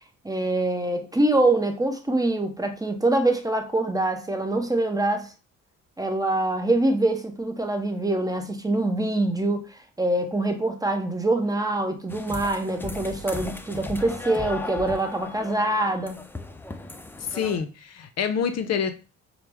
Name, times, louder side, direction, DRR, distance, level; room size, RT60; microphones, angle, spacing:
voice 1, 0.2-5.3 6.0-16.2, right 2 dB, 10° right, 0.7 m, -24 dB
sound 1, 12.1-17.6, left 2 dB, 5° left, 0.4 m, -37 dB
voice 2, 17.3-18.9, left 7 dB, 60° left, 0.5 m, -26 dB
5.6 x 2.0 x 3.4 m
cardioid pair, 90°, 30 cm